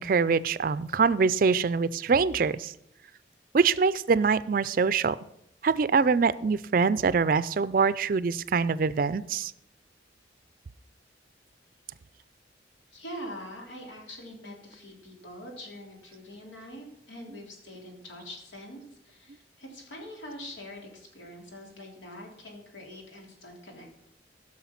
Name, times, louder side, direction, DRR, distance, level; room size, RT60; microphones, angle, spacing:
voice 1, 0.0-2.7 3.5-5.2 5.6-9.5, right 5 dB, 45° right, 17 dB, 0.4 m, -24 dB
voice 2, 12.9-23.9, equal, 90° left, 0 dB, 3.3 m, -44 dB
15.5 x 6.4 x 5.8 m, 0.78 s
head